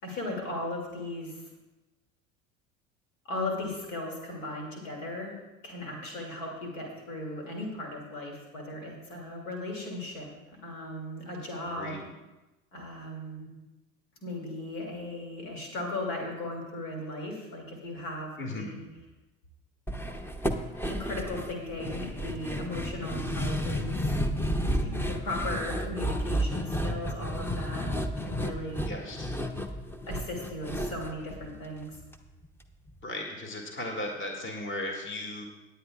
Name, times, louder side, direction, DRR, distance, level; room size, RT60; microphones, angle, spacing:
voice 1, 0.0-1.5 3.2-5.3 5.6-12.0 12.7-13.5 14.2-18.9 20.9-27.9 28.2-28.9 30.1-32.0, left 1 dB, 70° left, 0 dB, 2.6 m, -37 dB
sound 1, 19.9-32.1 32.4-32.5 32.9-33.0, equal, 5° left, 0.7 m, -32 dB
voice 2, 28.9-29.3 33.0-35.4, left 1 dB, 30° left, 1 dB, 2.2 m, -36 dB
19.0 x 8.6 x 2.4 m, 1.0 s
figure-of-eight pair, 70°, 40 cm